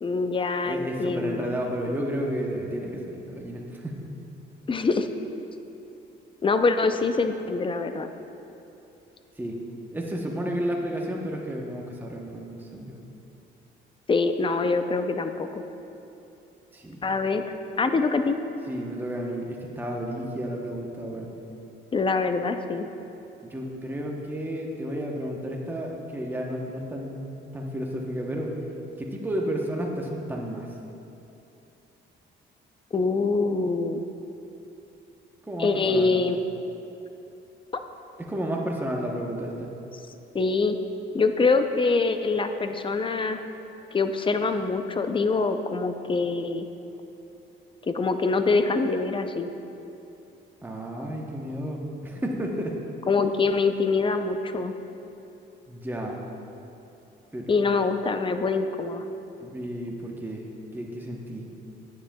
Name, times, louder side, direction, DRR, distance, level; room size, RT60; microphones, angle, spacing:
voice 1, 0.0-1.5 4.7-5.1 6.4-8.1 14.1-15.6 17.0-17.4 17.8-18.4 21.9-22.9 32.9-34.0 35.6-36.4 37.7-37.8 40.3-40.8 41.1-43.4 43.9-46.7 47.8-49.5 53.1-54.7 57.5-59.0, left 4 dB, 25° left, 8 dB, 0.5 m, -24 dB
voice 2, 0.6-4.1 9.4-9.6 9.9-13.0 16.7-17.1 18.7-21.3 23.4-28.5 29.0-30.7 35.4-36.2 38.2-39.7 50.6-52.8 55.7-56.2 57.3-57.6 59.4-60.5 60.7-61.5, equal, 10° right, -1 dB, 0.9 m, -32 dB
10.0 x 9.4 x 2.3 m, 2.9 s
cardioid pair, 90°, 20 cm